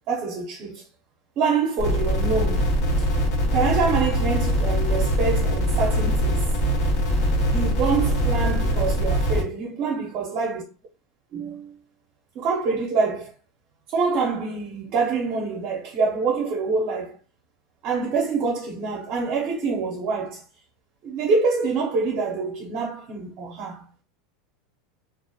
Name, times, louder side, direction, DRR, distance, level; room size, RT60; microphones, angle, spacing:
voice 1, 0.1-0.9 1.4-3.1 3.5-6.4 7.5-10.6 11.3-11.8 12.3-13.3 13.9-17.2 17.8-20.4 21.0-23.8, right 4 dB, 45° right, 0.6 m, -26 dB
sound 1, 1.8-9.4, equal, 60° left, 1.2 m, -22 dB
2.7 x 2.4 x 2.3 m
supercardioid pair, 145°, 0 cm